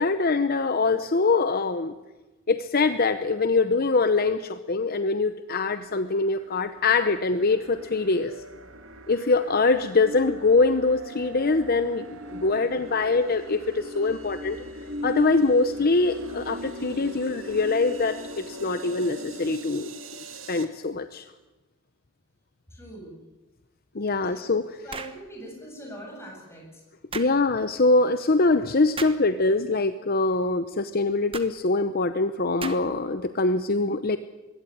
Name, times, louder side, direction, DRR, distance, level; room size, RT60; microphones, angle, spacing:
voice 1, 0.0-1.9 2.5-8.3 9.1-14.7 15.0-19.9 20.5-21.2 23.9-25.0 27.1-34.2, left 3 dB, 50° left, 10 dB, 0.8 m, -23 dB
sound 1, 5.7-20.7, equal, 75° right, 2.2 m, -39 dB
voice 2, 22.7-23.2 24.3-24.4 24.8-26.7, right 1 dB, 15° left, 0 dB, 7.9 m, -42 dB
sound 2, 24.9-25.2 27.1-27.4 29.0-29.2 31.3-31.5 32.6-33.0, right 5 dB, 30° right, 1.3 m, -36 dB
21.5 x 16.5 x 10.0 m, 1.1 s
head